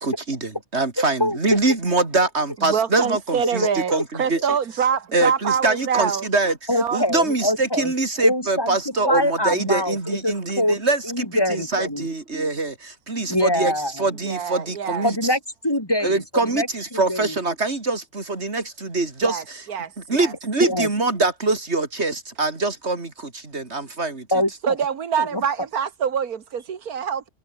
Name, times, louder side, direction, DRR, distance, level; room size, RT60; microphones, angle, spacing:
voice 1, 0.0-4.4 5.1-15.2 16.0-19.7 20.0-24.3, right 3 dB, 45° right, 3.7 m, -24 dB
voice 2, 1.2-1.6 3.9-4.0 6.7-7.9 8.2-8.8 9.1-10.0 10.2-10.8 11.0-12.1 13.3-13.9 15.0-16.2 16.5-16.7 16.9-17.3 20.6-20.9 24.3-24.8 25.2-25.4, left 1 dB, 15° left, 4.1 m, -23 dB
voice 3, 2.6-3.9 4.2-6.3 6.8-7.0 14.2-15.1 19.2-19.4 19.7-20.3 24.6-27.3, right 7 dB, 80° right, 1.9 m, -25 dB
omnidirectional pair, 1.5 m